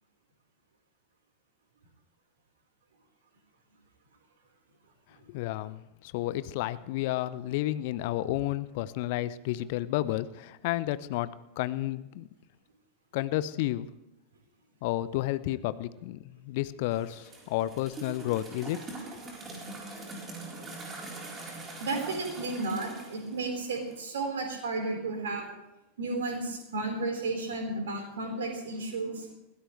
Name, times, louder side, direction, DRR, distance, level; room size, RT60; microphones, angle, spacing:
voice 1, 5.3-12.3 13.1-13.9 14.8-19.1, left 15 dB, 50° left, 16 dB, 0.6 m, -31 dB
sound 1, 16.9-24.0, right 2 dB, 20° right, 4.1 m, -43 dB
voice 2, 21.8-25.5 26.0-29.3, right 3 dB, 60° right, 2 dB, 4.6 m, -33 dB
21.5 x 16.0 x 3.3 m, 0.96 s
figure-of-eight pair, 90°, 0 cm